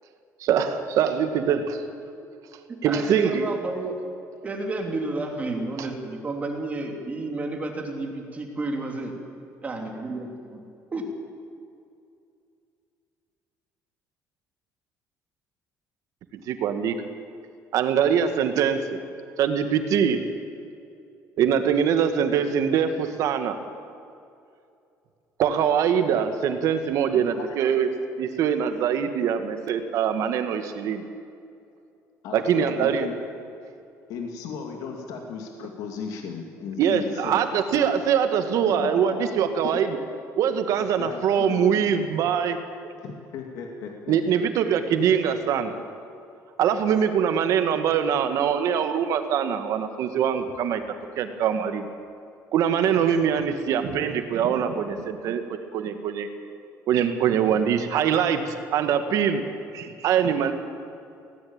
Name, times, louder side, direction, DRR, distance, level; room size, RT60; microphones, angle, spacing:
voice 1, 0.4-1.8 2.8-3.5 5.8-5.9 16.3-17.0 17.7-19.0 19.4-20.2 21.4-23.6 25.4-27.9 28.2-31.0 32.3-33.1 36.8-40.0 40.4-42.6 42.8-42.9 44.1-45.7 46.6-50.8 51.2-51.9 52.5-56.3 56.9-59.5 59.7-60.5, right 8 dB, 65° right, 8 dB, 1.8 m, -23 dB
voice 2, 2.8-3.9 4.4-9.1 9.6-10.6 10.9-11.0, right 2 dB, 25° right, 2 dB, 3.1 m, -31 dB
voice 3, 32.2-33.2 34.1-37.4 38.7-39.4 40.7-41.9 43.0-44.2, left 6 dB, 75° left, 2 dB, 2.6 m, -36 dB
19.0 x 17.5 x 8.9 m, 2.5 s
cardioid pair, 150°, 6 cm